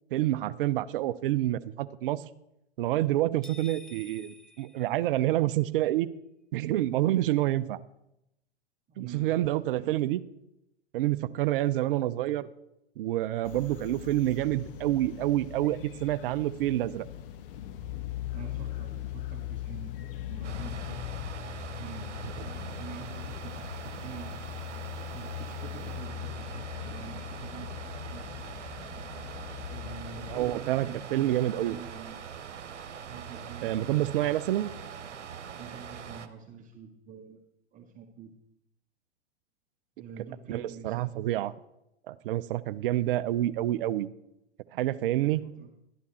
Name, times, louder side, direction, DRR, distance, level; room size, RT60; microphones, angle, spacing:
voice 1, 0.1-2.2 2.8-6.1 6.5-7.8 9.0-10.2 10.9-12.5 13.0-17.1 30.3-31.8 33.6-34.7 40.5-41.5 42.1-44.1 44.7-45.4, right 14 dB, 50° right, 16 dB, 0.7 m, -28 dB
sound 1, 3.4-5.6, left 1 dB, ahead, 0.4 m, -51 dB
voice 2, 8.9-9.9 18.3-19.9 20.3-21.1 21.7-24.4 25.1-28.6 29.7-32.2 33.1-34.4 35.6-37.4 37.7-38.3 40.0-41.1 45.2-45.7, right 6 dB, 20° right, -3 dB, 1.6 m, -46 dB
sound 2, 13.4-30.6, left 13 dB, 50° left, 1.0 m, -40 dB
sound 3, 20.4-36.3, right 7 dB, 80° right, 1.1 m, -43 dB
12.5 x 10.5 x 4.3 m, 0.84 s
hypercardioid pair, 110°, 35 cm